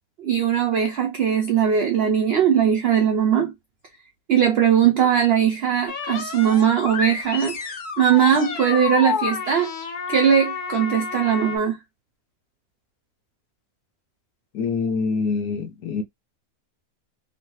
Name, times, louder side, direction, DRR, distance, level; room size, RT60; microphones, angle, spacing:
voice 1, 0.2-3.5 4.3-9.7 10.1-11.8, right 8 dB, 85° right, 0.5 m, -20 dB
sound 1, 5.9-11.6, left 5 dB, 55° left, 0.5 m, -30 dB
voice 2, 14.5-16.0, left 4 dB, 85° left, 1.2 m, -25 dB
3.1 x 2.2 x 2.8 m
omnidirectional pair, 1.6 m